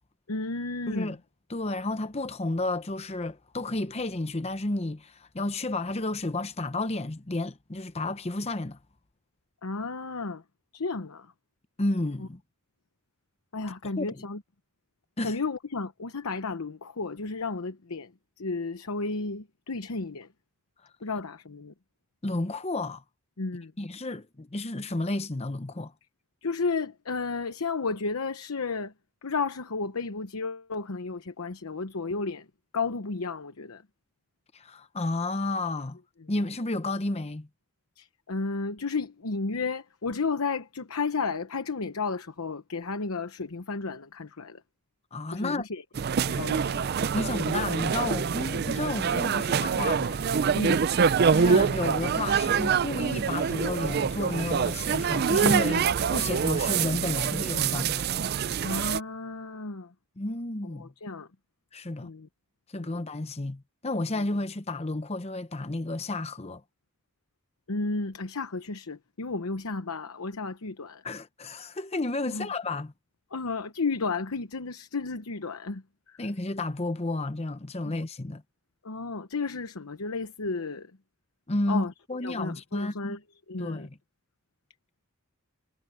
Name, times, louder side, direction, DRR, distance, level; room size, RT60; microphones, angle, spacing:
voice 1, 0.3-1.2 9.6-10.4 10.7-11.3 13.5-14.4 15.2-18.1 18.4-20.3 21.0-21.7 23.4-23.7 26.4-28.9 29.2-32.5 32.7-33.8 36.2-36.3 38.0-44.6 45.3-45.8 46.3-46.8 50.5-50.9 58.6-59.9 60.8-61.3 62.0-62.3 62.7-63.0 64.1-64.2 67.7-71.0 72.3-72.5 73.3-76.2 77.8-78.0 78.8-80.9 81.7-81.9 82.2-83.2 83.5-83.9, left 4 dB, 80° left, 0.9 m, -33 dB
voice 2, 1.5-8.8 11.8-12.4 14.0-14.2 15.2-15.4 22.2-23.0 23.8-25.9 34.5-36.0 36.3-37.5 45.1-45.6 47.1-50.3 51.3-58.0 60.2-60.9 61.7-62.1 62.7-66.6 71.0-72.9 76.2-78.4 81.5-83.2 83.6-83.9, left 2 dB, 30° left, 0.8 m, -31 dB
Street Fair - São Paulo - Brazil, 46.0-59.0, right 6 dB, 45° right, 0.4 m, -25 dB
head